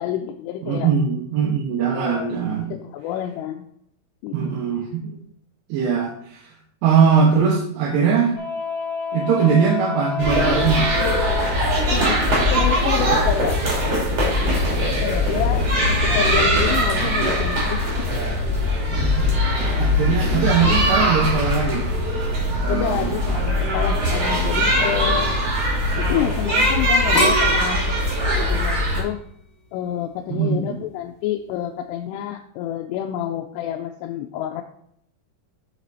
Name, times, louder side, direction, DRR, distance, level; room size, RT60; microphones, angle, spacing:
voice 1, 0.0-0.9 1.9-2.3 2.7-3.7 4.2-4.4 9.4-9.6 11.9-12.2 12.5-14.1 14.4-14.6 14.8-18.1 20.1-20.5 22.7-25.3 26.0-27.8 28.2-29.2 29.7-34.6, left 11 dB, 90° left, 3 dB, 2.7 m, -28 dB
voice 2, 0.6-2.7 4.3-5.2 5.7-6.5 6.8-8.4 9.1-10.9 18.9-19.3 19.8-21.9 22.5-23.1 30.3-30.8, right 6 dB, 80° right, -2 dB, 3.0 m, -21 dB
sound 1, 8.4-11.5 16.1-16.2, left 5 dB, 25° left, 3.9 m, -28 dB
sound 2, 10.2-29.0, equal, 40° right, 3.3 m, -21 dB
sound 3, 27.1-30.1 30.6-31.1, right 1 dB, 55° left, 3.0 m, -26 dB
7.4 x 6.7 x 4.0 m, 0.71 s
omnidirectional pair, 4.7 m